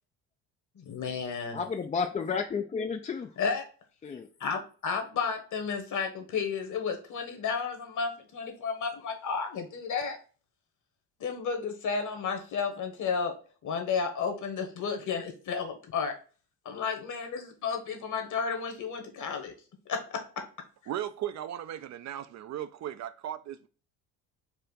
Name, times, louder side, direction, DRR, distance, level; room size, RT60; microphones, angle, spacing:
voice 1, 0.8-1.6 3.4-3.6 4.4-10.2 11.2-13.3 13.6-16.1 16.7-19.5 19.9-20.2, left 5 dB, 50° left, 1.3 m, -32 dB
voice 2, 1.5-3.4 4.0-4.3, left 5 dB, 20° left, 0.3 m, -32 dB
voice 3, 20.9-23.7, right 11 dB, 50° right, 0.4 m, -37 dB
4.5 x 2.5 x 3.8 m
supercardioid pair, 70°, 38 cm